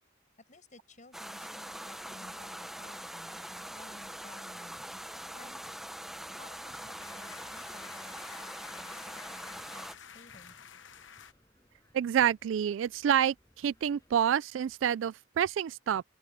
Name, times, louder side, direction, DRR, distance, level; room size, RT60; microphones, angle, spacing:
voice 1, 0.5-5.0 5.3-5.9 6.3-10.6, left 2 dB, 40° left, 7.3 m, -56 dB
sound 1, 1.1-9.9, equal, ahead, 0.7 m, -43 dB
sound 2, 1.9-14.3, left 1 dB, 15° left, 7.8 m, -66 dB
sound 3, 6.7-11.3, left 8 dB, 65° left, 1.0 m, -51 dB
voice 2, 11.9-16.0, right 9 dB, 70° right, 0.3 m, -28 dB
open air
head